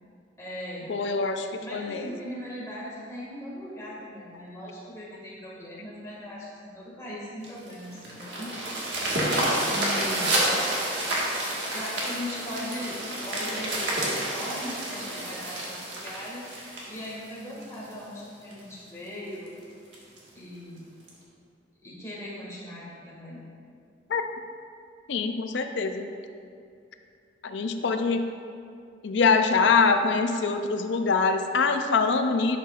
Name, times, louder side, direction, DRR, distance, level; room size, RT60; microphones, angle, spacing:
voice 1, 0.4-1.0 1.6-8.6 9.6-10.4 11.7-13.0 13.2-16.6 16.9-19.5 20.3-20.8 21.8-23.5, left 1 dB, 15° left, -7 dB, 1.8 m, -39 dB
voice 2, 0.9-2.1 24.1-24.2 25.1-26.1 27.4-28.2 29.0-32.6, left 4 dB, 65° left, 7 dB, 0.5 m, -24 dB
sound 1, 7.4-17.9 18.5-18.6 19.0-19.1 19.5-19.6 19.9-20.2 21.1-21.2, right 1 dB, 65° right, 1.6 m, -29 dB
11.0 x 5.8 x 2.4 m, 2.3 s
head